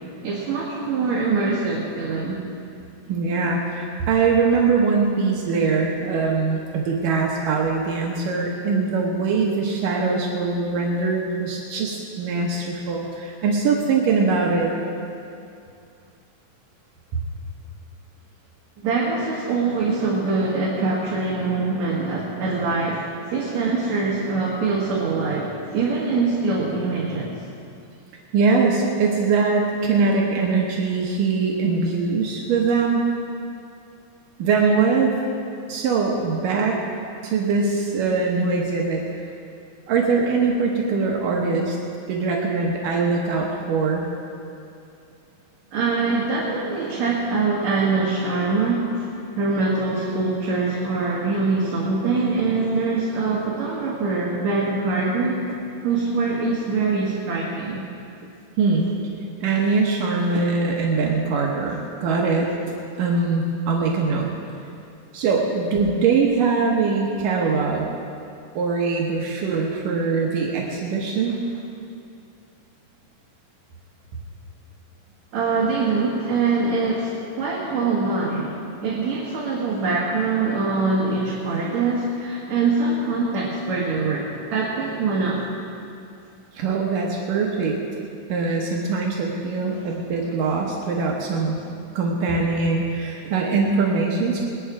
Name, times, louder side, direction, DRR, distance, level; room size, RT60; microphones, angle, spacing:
voice 1, 0.2-2.4 18.8-27.4 45.7-55.4 55.8-57.9 75.3-85.4 89.7-89.8, right 3 dB, 60° right, -5 dB, 2.7 m, -23 dB
voice 2, 3.1-14.7 17.1-17.2 28.3-33.0 34.4-35.1 35.7-36.8 37.2-39.0 39.9-41.8 42.1-44.1 58.6-59.1 59.4-62.5 63.0-64.3 65.1-67.9 68.6-71.4 86.5-87.8 88.3-91.6 92.0-94.5, right 4 dB, 80° right, -2 dB, 2.8 m, -22 dB
21.0 x 10.5 x 4.9 m, 2.5 s
omnidirectional pair, 3.9 m